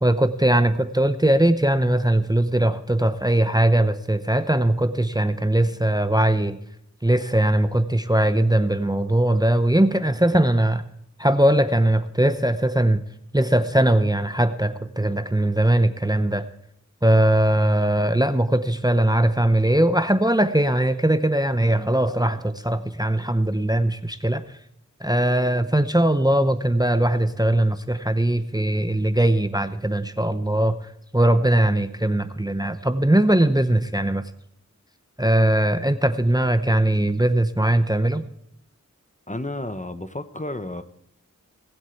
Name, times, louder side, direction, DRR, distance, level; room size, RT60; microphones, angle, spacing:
voice 1, 0.0-6.6 7.0-10.8 11.2-13.0 13.3-16.5 17.0-24.6 25.0-30.8 31.1-34.2 35.2-38.2, right 1 dB, 10° right, 10 dB, 0.8 m, -20 dB
voice 2, 39.3-40.8, left 1 dB, 25° left, 10 dB, 0.9 m, -31 dB
19.5 x 8.1 x 4.5 m, 0.74 s
wide cardioid pair, 40°, 31 cm